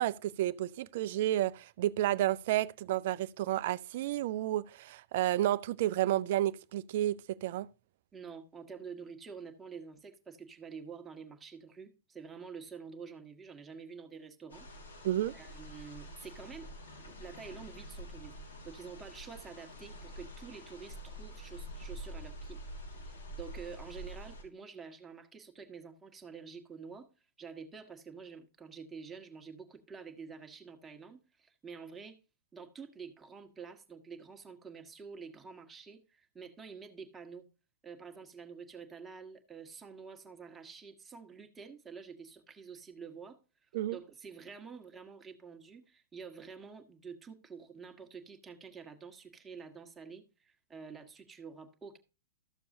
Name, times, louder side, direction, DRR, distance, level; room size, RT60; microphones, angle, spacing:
voice 1, 0.0-7.7 15.0-15.3 43.7-44.0, right 13 dB, 55° right, 0.4 m, -31 dB
voice 2, 8.1-14.7 15.0-15.1 15.3-16.7 17.2-22.6 23.1-32.2 32.5-37.5 37.8-43.4 43.9-52.0, right 5 dB, 15° right, 1.4 m, -48 dB
sound 1, 14.5-24.4, equal, 80° left, 3.3 m, -47 dB
13.5 x 6.9 x 2.7 m
figure-of-eight pair, 105°, 0 cm